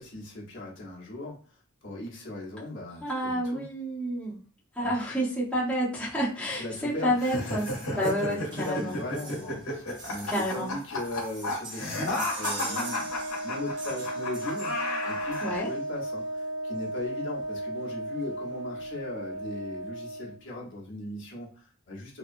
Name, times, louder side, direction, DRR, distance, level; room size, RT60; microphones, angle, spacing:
voice 1, 0.0-1.4 1.8-3.6 4.8-4.9 6.3-7.2 7.9-14.7 15.0-22.2, left 2 dB, 60° left, -4 dB, 1.0 m, -38 dB
voice 2, 3.0-4.4 4.7-9.0 10.3-10.8 15.4-15.7, equal, 5° left, -8 dB, 0.8 m, -29 dB
sound 1, 7.2-15.6, left 2 dB, 80° left, 1.0 m, -33 dB
sound 2, 7.6-15.9 17.0-17.1 17.4-17.5 17.7-17.9 18.2-18.8 19.3-19.4, right 2 dB, 40° right, 1.2 m, -43 dB
Wind instrument woodwind instrument, 12.6-20.4, right 1 dB, 70° right, 0.5 m, -35 dB
2.8 x 2.3 x 2.5 m, 0.42 s
head